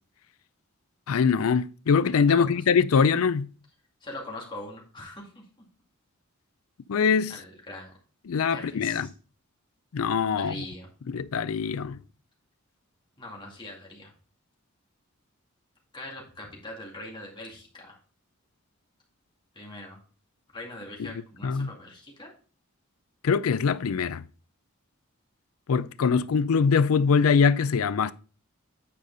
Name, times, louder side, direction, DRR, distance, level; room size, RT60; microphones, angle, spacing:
voice 1, 1.1-3.5 6.9-7.3 8.3-9.1 9.9-10.6 11.1-12.0 21.0-21.1 21.4-21.7 23.2-24.2 25.7-28.1, left 6 dB, 80° left, 0.4 m, -23 dB
voice 2, 4.0-5.4 7.3-8.0 8.5-9.1 10.3-10.9 13.2-14.1 15.9-18.0 19.5-20.0 20.5-22.3, left 1 dB, 20° left, 2.2 m, -41 dB
8.8 x 5.0 x 3.9 m
head